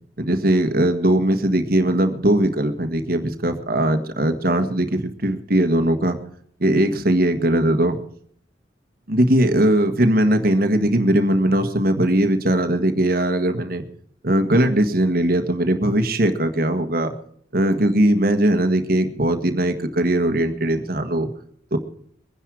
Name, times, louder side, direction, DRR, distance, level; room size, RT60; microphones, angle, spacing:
voice 1, 0.2-6.2 6.6-8.0 9.1-13.8 14.2-17.1 17.5-21.3 21.7-21.8, right 1 dB, 50° right, 8 dB, 1.6 m, -19 dB
22.0 x 10.0 x 4.8 m, 0.64 s
head